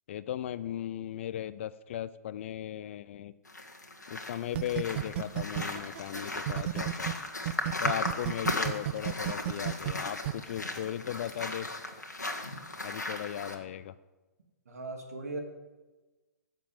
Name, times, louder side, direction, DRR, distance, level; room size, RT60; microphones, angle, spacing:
voice 1, 0.1-3.3 4.1-7.1 7.8-11.7 12.8-13.9, left 11 dB, 45° left, 16 dB, 0.5 m, -37 dB
sound 1, 3.5-13.6, left 2 dB, 80° left, 1.8 m, -37 dB
sound 2, 4.5-7.1 7.5-10.3, right 14 dB, 40° right, 0.5 m, -32 dB
voice 2, 14.6-15.4, right 2 dB, 65° right, 3 dB, 2.7 m, -38 dB
14.0 x 7.5 x 7.3 m, 1.2 s
figure-of-eight pair, 120°, 9 cm